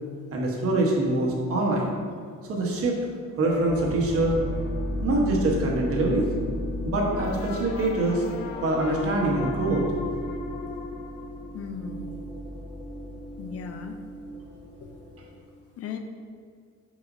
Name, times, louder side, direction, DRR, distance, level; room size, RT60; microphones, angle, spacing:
voice 1, 0.3-1.9 2.5-3.0 3.4-4.3 5.0-6.2 6.8-8.2 8.6-9.8, right 2 dB, 45° right, -2 dB, 1.2 m, -24 dB
sound 1, 3.4-15.3, left 1 dB, 20° right, 1.1 m, -35 dB
sound 2, 7.0-12.0, left 4 dB, 85° left, 0.6 m, -37 dB
voice 2, 11.5-12.2 13.4-14.0 14.8-15.0 15.8-16.0, left 6 dB, 45° left, 6 dB, 0.5 m, -37 dB
6.1 x 6.0 x 2.6 m, 2.1 s
cardioid pair, 160°, 33 cm